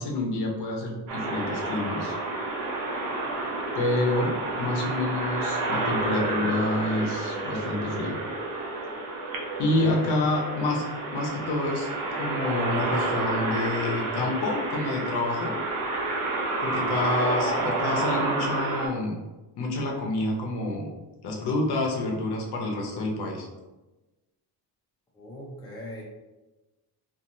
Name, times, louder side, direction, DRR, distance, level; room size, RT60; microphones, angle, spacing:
voice 1, 0.0-2.2 3.7-8.2 9.6-10.8 11.1-11.9 12.2-15.5 16.6-19.2 19.6-20.9 21.2-23.5, left 2 dB, 65° left, 0 dB, 0.7 m, -28 dB
sound 1, 1.1-18.9, right 2 dB, 50° right, 0.7 m, -30 dB
voice 2, 9.2-9.6 10.0-10.2 25.1-26.0, left 1 dB, 10° left, -4 dB, 0.4 m, -43 dB
2.9 x 2.5 x 2.6 m, 1.1 s
cardioid pair, 165°, 43 cm